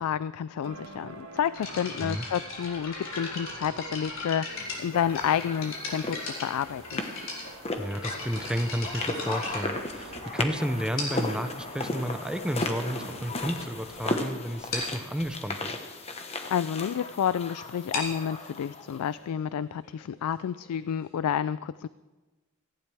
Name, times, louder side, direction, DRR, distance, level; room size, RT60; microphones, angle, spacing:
voice 1, 0.0-7.0 16.5-21.9, left 8 dB, 85° left, 16 dB, 0.3 m, -30 dB
sound 1, 0.6-14.8 15.0-15.3, right 3 dB, 75° right, 1.6 m, -47 dB
sound 2, 1.5-10.4 11.0-11.4 12.2-12.3 12.9-13.0 13.3-13.5 13.8-13.9 14.2-14.3 14.7-15.0 17.7-21.2, left 3 dB, 65° left, 4.1 m, -38 dB
sound 3, 4.9-19.0, left 2 dB, 30° left, 1.2 m, -36 dB
voice 2, 7.8-15.8, equal, 5° right, 9 dB, 0.5 m, -32 dB
18.0 x 15.0 x 3.4 m, 1.2 s
head